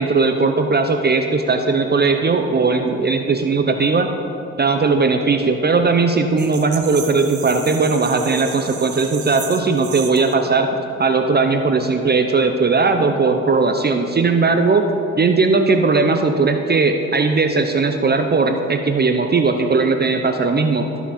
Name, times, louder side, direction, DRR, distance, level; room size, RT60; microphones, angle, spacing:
voice 1, 0.0-4.1 4.6-10.7 11.0-14.9 15.2-20.9, right 4 dB, 30° right, 6 dB, 0.6 m, -18 dB
sound 1, 6.4-10.3, right 8 dB, 65° right, 1.0 m, -34 dB
13.0 x 6.0 x 4.2 m, 2.9 s
cardioid pair, 75°, 32 cm